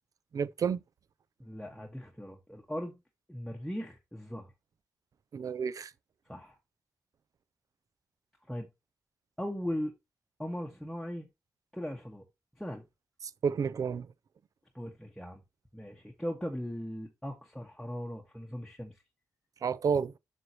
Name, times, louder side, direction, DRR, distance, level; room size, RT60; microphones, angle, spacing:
voice 1, 0.3-0.8 5.3-5.9 13.2-14.1 19.6-20.1, right 6 dB, 65° right, 0.5 m, -30 dB
voice 2, 1.4-3.0 3.3-4.5 6.3-6.5 8.5-8.7 9.4-9.9 10.4-11.3 11.7-12.2 12.6-12.8 14.7-15.4 15.7-19.0, equal, 5° left, 1.4 m, -38 dB
7.6 x 6.3 x 2.9 m
cardioid pair, 70°, 7 cm